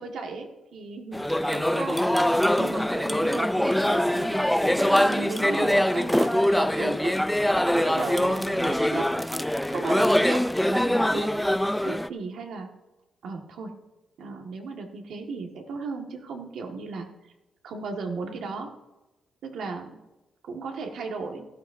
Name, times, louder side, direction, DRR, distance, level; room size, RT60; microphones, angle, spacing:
voice 1, 0.0-2.0 2.6-4.4 4.8-7.2 7.7-9.1 9.7-10.4 10.7-11.3 11.8-12.7 13.2-13.7 14.2-17.1 17.6-18.7 19.4-20.0 20.4-21.4, right 4 dB, 80° right, 3 dB, 1.7 m, -36 dB
sound 1, 1.1-12.1, left 1 dB, 5° left, 0.4 m, -23 dB
17.0 x 13.0 x 2.7 m, 1.0 s
cardioid pair, 110°, 0 cm